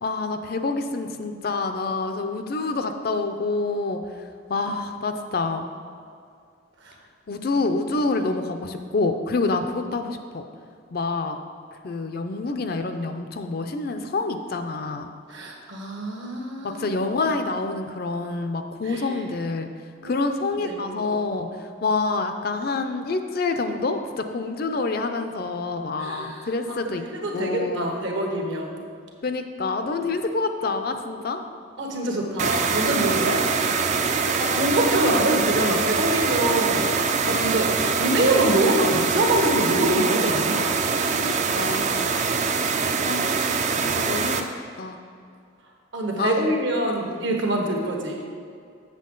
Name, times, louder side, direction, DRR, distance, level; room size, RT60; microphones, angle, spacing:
voice 1, 0.0-4.0 4.5-5.7 7.3-10.4 10.9-11.4 11.8-15.1 16.6-19.7 20.0-21.5 21.8-27.0 27.3-27.9 29.2-31.4 41.2-42.2 43.0-43.5 43.8-44.5 44.8-45.0 46.2-46.5 47.0-47.2, left 3 dB, 50° left, 7 dB, 0.4 m, -27 dB
voice 2, 15.3-17.0 18.8-19.2 20.0-20.3 20.6-21.1 26.0-26.5 27.0-28.8 31.8-33.4 34.4-36.9 37.2-37.7 38.0-40.6 45.9-48.2, right 1 dB, 65° right, 1 dB, 1.2 m, -25 dB
sound 1, 32.4-44.4, right 5 dB, 35° right, 0.4 m, -24 dB
7.5 x 6.9 x 3.8 m, 2.3 s
head